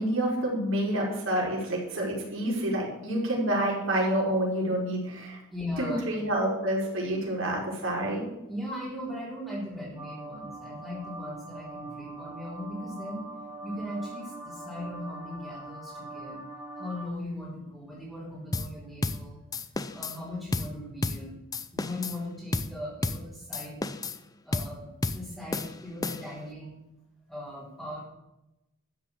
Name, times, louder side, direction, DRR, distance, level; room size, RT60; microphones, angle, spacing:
voice 1, 0.0-5.4 5.8-8.2, right 1 dB, 65° right, -2 dB, 5.1 m, -28 dB
voice 2, 5.5-6.0 8.5-13.2 13.6-16.4 16.7-19.4 19.9-21.4 21.7-23.8 24.4-26.8 27.3-28.0, left 1 dB, ahead, -11 dB, 4.1 m, -38 dB
sound 1, 10.0-17.1, right 2 dB, 20° right, 2.4 m, -42 dB
sound 2, 18.5-18.7 19.0-19.2 19.5-20.2 20.5-20.7 21.0-21.2 21.5-22.2 22.5-22.7 23.0-23.2 23.5-24.2 24.5-24.7 25.0-25.2 25.5-26.4, left 2 dB, 15° left, 0.6 m, -32 dB
13.0 x 7.6 x 8.4 m, 0.93 s
head